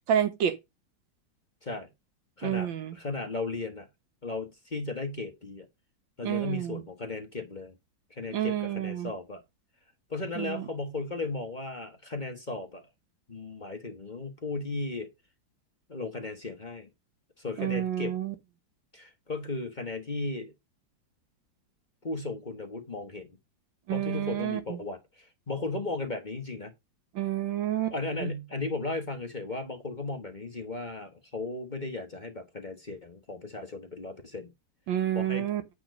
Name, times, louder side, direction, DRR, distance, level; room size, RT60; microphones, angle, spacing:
voice 1, 0.1-0.6 2.4-3.0 6.2-6.8 8.3-9.1 10.4-10.7 17.6-18.4 23.9-24.8 27.1-27.9 28.2-28.3 34.9-35.6, right 10 dB, 85° right, 1.9 m, -29 dB
voice 2, 2.4-3.9 4.2-5.7 6.2-7.7 8.1-9.4 10.1-12.8 13.3-15.1 15.9-16.9 17.4-18.1 18.9-20.5 22.0-23.3 23.9-26.7 27.9-34.5 35.1-35.5, left 3 dB, 25° left, 1.3 m, -36 dB
8.8 x 4.7 x 5.1 m
omnidirectional pair, 2.0 m